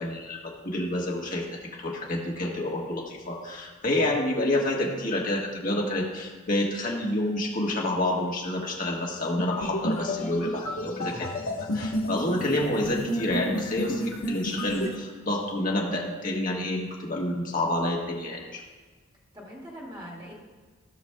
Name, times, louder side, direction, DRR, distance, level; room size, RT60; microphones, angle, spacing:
voice 1, 0.0-1.4 1.7-11.3 11.6-14.0 14.3-18.6, left 1 dB, 40° left, -2 dB, 1.5 m, -28 dB
sound 1, 9.4-14.9, equal, 85° left, 1.2 m, -31 dB
voice 2, 9.8-10.3 19.3-20.4, equal, 20° right, -4 dB, 2.2 m, -42 dB
16.0 x 6.1 x 2.3 m, 1.4 s
head